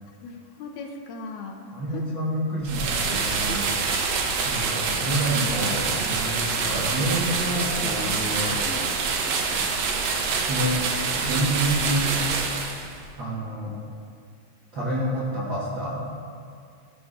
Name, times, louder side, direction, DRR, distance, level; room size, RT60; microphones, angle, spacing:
voice 1, 0.2-1.6 1.9-2.0 3.5-3.6 3.8-4.2 8.7-8.8, left 5 dB, 80° left, 2 dB, 1.8 m, -38 dB
voice 2, 1.7-3.7 4.4-8.6 9.4-9.6 10.1-10.8 11.2-12.2 13.2-13.7 14.7-16.0, right 1 dB, 50° right, -9 dB, 1.5 m, -28 dB
sound 1, 2.6-13.0, right 4 dB, 90° right, 1.4 m, -26 dB
16.5 x 6.0 x 2.5 m, 2.3 s
omnidirectional pair, 4.0 m